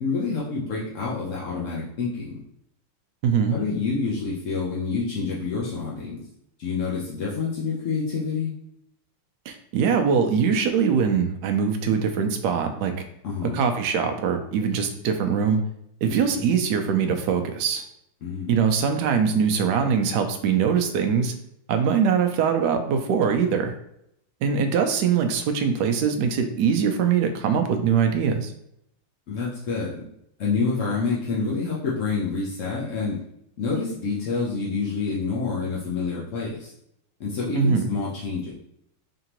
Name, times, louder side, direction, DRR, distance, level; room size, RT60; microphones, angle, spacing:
voice 1, 0.0-2.4 3.5-6.2 6.6-8.5 13.2-13.7 16.1-16.4 18.2-18.5 29.3-30.0 30.4-33.2 33.6-36.7 37.2-38.5, left 4 dB, 70° left, -6 dB, 0.7 m, -28 dB
voice 2, 3.2-3.6 9.5-12.9 13.5-15.6 16.0-17.8 18.5-21.3 21.7-23.7 24.4-28.5 37.6-37.9, right 6 dB, 80° right, 6 dB, 0.9 m, -22 dB
3.8 x 3.5 x 2.9 m, 0.75 s
omnidirectional pair, 2.3 m